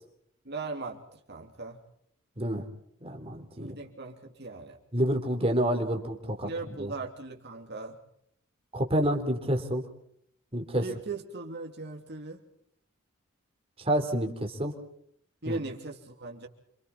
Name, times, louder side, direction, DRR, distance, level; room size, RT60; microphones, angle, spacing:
voice 1, 0.4-1.8 3.6-4.8 6.4-8.0 10.8-12.4 15.4-16.5, right 3 dB, 55° right, 2 dB, 3.1 m, -39 dB
voice 2, 2.4-2.7 3.0-3.7 4.9-6.5 6.8-6.9 8.7-9.8 10.5-10.8 13.8-14.8 15.5-15.6, equal, 30° right, 3 dB, 3.6 m, -28 dB
29.0 x 26.5 x 4.3 m, 0.70 s
head